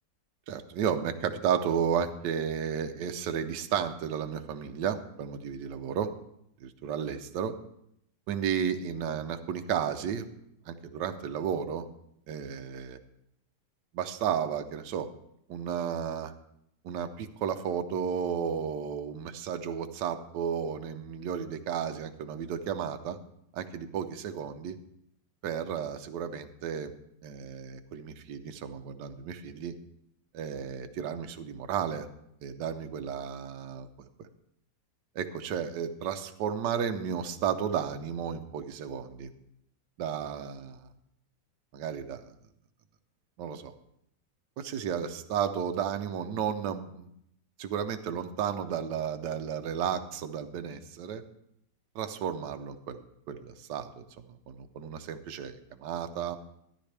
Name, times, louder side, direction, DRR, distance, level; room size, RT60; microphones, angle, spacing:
voice 1, 0.5-6.1 6.6-7.5 8.3-10.3 10.7-11.9 12.3-13.0 13.9-15.1 15.5-16.3 16.8-23.2 23.5-24.8 25.4-26.9 27.2-29.7 30.3-32.1 32.4-34.3 35.1-39.3 40.0-40.9 41.7-42.2 43.4-43.7 44.6-47.1 47.6-51.2 51.9-53.0 53.3-56.4, right 8 dB, 75° right, 7 dB, 1.3 m, -33 dB
13.0 x 11.0 x 3.3 m, 0.75 s
omnidirectional pair, 1.9 m